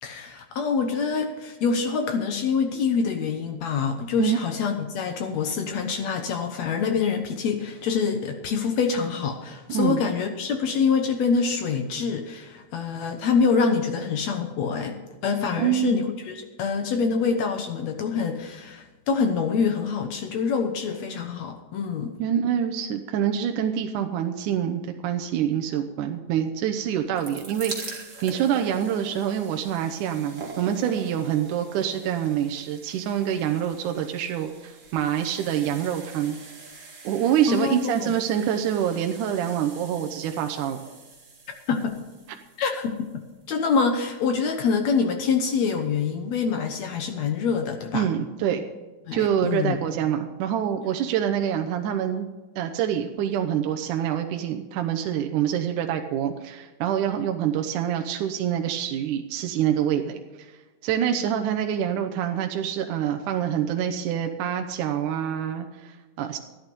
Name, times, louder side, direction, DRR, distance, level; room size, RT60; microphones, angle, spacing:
voice 1, 0.0-22.2 37.5-38.2 41.7-42.0 42.6-43.1 43.5-48.1 49.1-49.8, left 5 dB, 70° left, 6 dB, 1.7 m, -25 dB
voice 2, 9.7-10.0 15.6-16.0 22.2-36.4 37.0-40.8 47.9-48.6 49.1-52.3 52.6-60.5 60.8-66.4, right 9 dB, 75° right, 5 dB, 2.0 m, -26 dB
sound 1, 26.9-43.9 44.7-44.8 45.0-45.1, right 3 dB, 30° right, 1.5 m, -43 dB
13.0 x 11.0 x 5.3 m, 1.2 s
omnidirectional pair, 4.3 m